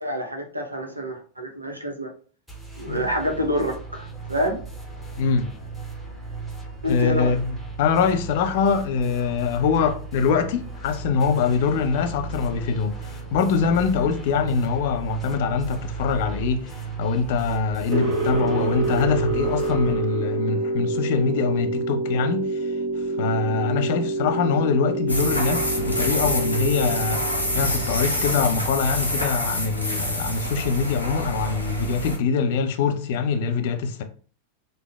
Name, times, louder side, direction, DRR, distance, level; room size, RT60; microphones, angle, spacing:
voice 1, 0.0-2.1 2.7-4.6 6.8-7.4, equal, 85° right, 0.6 m, -27 dB
sound 1, 2.5-19.9, right 4 dB, ahead, 0.8 m, -36 dB
voice 2, 5.2-5.5 6.9-22.7 23.2-27.2 27.5-34.0, left 5 dB, 50° left, 0.4 m, -23 dB
sound 2, 17.9-28.8, right 2 dB, 50° right, 1.0 m, -27 dB
sound 3, 25.1-32.2, equal, 85° left, 0.7 m, -27 dB
3.0 x 2.0 x 2.2 m
figure-of-eight pair, 90°, 0 cm